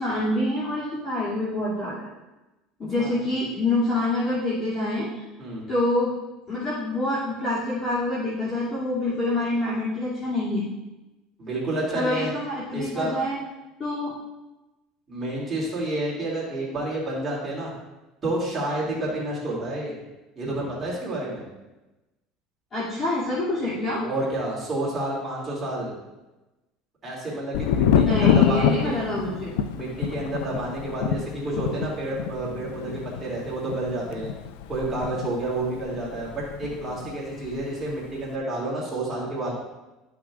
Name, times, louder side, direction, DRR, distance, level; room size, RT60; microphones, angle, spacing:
voice 1, 0.0-2.1 2.8-5.2 5.7-6.1 6.5-10.6 11.9-13.4 13.8-14.1 22.7-24.1 28.1-29.6, left 1 dB, 30° left, -10 dB, 2.6 m, -26 dB
voice 2, 11.4-12.3 12.7-13.2 15.1-17.7 18.2-19.9 20.4-21.4 24.0-25.9 27.0-29.0 29.7-34.3 34.7-39.6, right 1 dB, 20° right, -6 dB, 2.7 m, -29 dB
Thunder, 27.5-37.2 37.4-38.2, left 8 dB, 85° left, 0.4 m, -26 dB
12.5 x 6.0 x 2.5 m, 1.0 s
cardioid pair, 135°, 0 cm